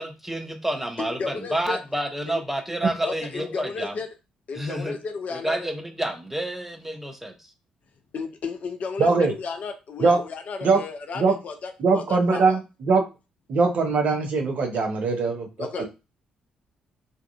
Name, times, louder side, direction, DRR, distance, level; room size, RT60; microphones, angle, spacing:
voice 1, 0.0-3.9 4.6-5.0 5.3-7.3, right 1 dB, 5° right, 5 dB, 0.6 m, -29 dB
voice 2, 1.0-1.8 2.3-2.4 3.0-4.1 4.5-5.7 8.1-12.6 15.6-15.8, left 4 dB, 45° left, 6 dB, 0.4 m, -33 dB
voice 3, 9.0-9.3 10.0-10.2 10.6-10.8 11.2-11.3 11.8-13.0 13.5-15.5 15.8-15.9, right 4 dB, 50° right, 3 dB, 0.6 m, -21 dB
2.6 x 2.3 x 2.3 m, 0.28 s
figure-of-eight pair, 40°, 3 cm